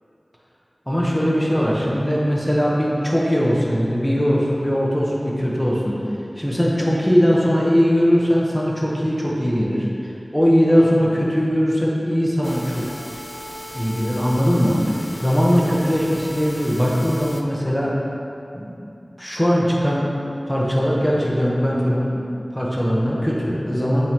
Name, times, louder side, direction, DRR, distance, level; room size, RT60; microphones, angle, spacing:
voice 1, 0.9-6.0 6.4-9.9 10.3-12.8 13.7-15.0 15.2-17.9 18.5-18.8 19.2-20.1 20.5-22.2 22.5-24.1, equal, 5° left, -4 dB, 1.3 m, -20 dB
sound 1, 12.4-17.4, equal, 30° left, 0.6 m, -36 dB
7.9 x 4.6 x 3.7 m, 2.7 s
wide cardioid pair, 40°, 0 cm